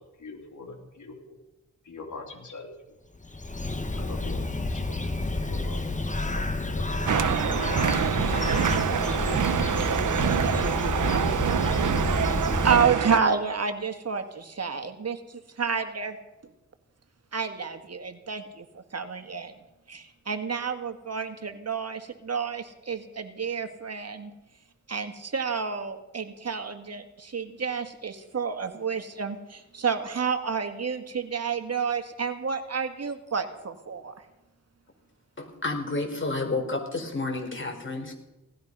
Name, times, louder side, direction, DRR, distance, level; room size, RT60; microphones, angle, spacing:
voice 1, 0.2-1.4 1.8-2.7 4.0-7.5 8.9-10.1, left 3 dB, 70° left, 2 dB, 3.5 m, -44 dB
Bird, 3.1-13.2, left 2 dB, 25° left, 1.7 m, -29 dB
sound 1, 7.1-13.2, right 8 dB, 75° right, 0.9 m, -26 dB
voice 2, 12.6-16.2 17.3-19.5 19.9-24.3 24.9-34.1, right 6 dB, 55° right, 7 dB, 1.8 m, -30 dB
voice 3, 35.4-38.1, left 3 dB, 40° left, 3 dB, 4.6 m, -30 dB
18.0 x 14.0 x 5.5 m, 1.0 s
cardioid pair, 50°, 31 cm